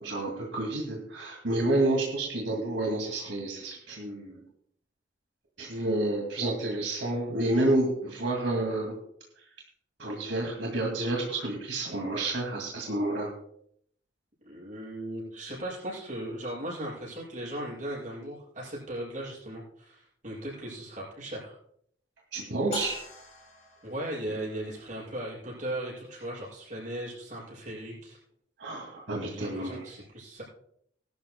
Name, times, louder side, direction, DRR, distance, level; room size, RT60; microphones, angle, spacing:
voice 1, 0.0-4.4 5.6-8.9 10.0-13.3 22.3-22.9 28.6-29.9, right 2 dB, 80° right, -1 dB, 2.4 m, -29 dB
voice 2, 14.4-21.6 23.8-28.2 29.2-30.4, right 1 dB, 40° right, -7 dB, 6.0 m, -37 dB
sound 1, 22.7-25.1, left 4 dB, 35° left, 2.0 m, -43 dB
20.0 x 12.0 x 2.3 m, 0.68 s
head